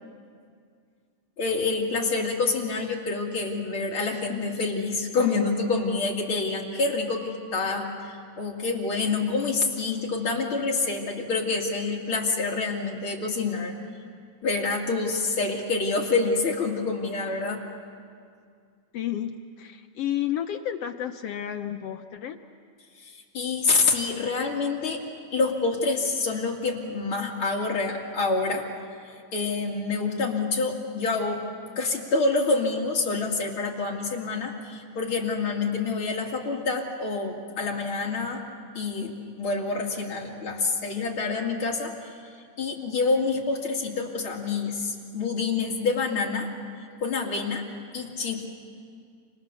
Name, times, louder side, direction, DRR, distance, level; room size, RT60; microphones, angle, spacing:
voice 1, 1.4-13.7 14.4-17.6 23.0-25.0 25.3-28.6 29.3-31.4 31.8-38.4 38.7-42.3 42.6-46.5 47.0-47.6 47.9-48.5, left 3 dB, 45° left, -1 dB, 3.1 m, -27 dB
voice 2, 18.9-22.4, left 10 dB, 70° left, 6 dB, 1.6 m, -31 dB
29.5 x 27.0 x 6.9 m, 2.2 s
omnidirectional pair, 3.3 m